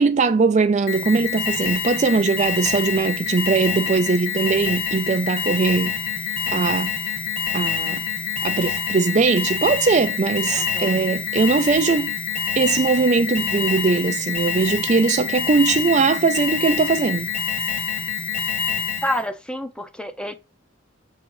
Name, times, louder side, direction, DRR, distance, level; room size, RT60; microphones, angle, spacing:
voice 1, 0.0-6.0 6.5-6.9 7.5-8.0 8.4-12.2 12.6-17.3, right 4 dB, 35° right, 0.4 m, -20 dB
Alarm, 0.9-19.3, left 6 dB, 50° left, 1.9 m, -26 dB
voice 2, 10.5-10.9 19.0-20.3, left 1 dB, 5° left, 0.6 m, -28 dB
7.2 x 3.8 x 4.6 m
head